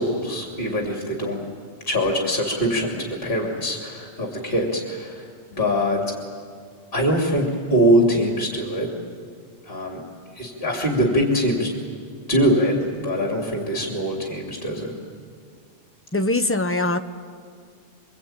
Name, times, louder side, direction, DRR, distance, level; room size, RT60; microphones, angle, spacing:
voice 1, 0.0-1.4 1.9-6.0 6.9-8.9 9.7-10.0 10.3-11.7 12.3-14.9, equal, 45° left, 0 dB, 3.4 m, -23 dB
voice 2, 16.1-17.0, left 2 dB, 10° left, 7 dB, 0.9 m, -22 dB
28.0 x 23.0 x 9.0 m, 2.2 s
omnidirectional pair, 1.4 m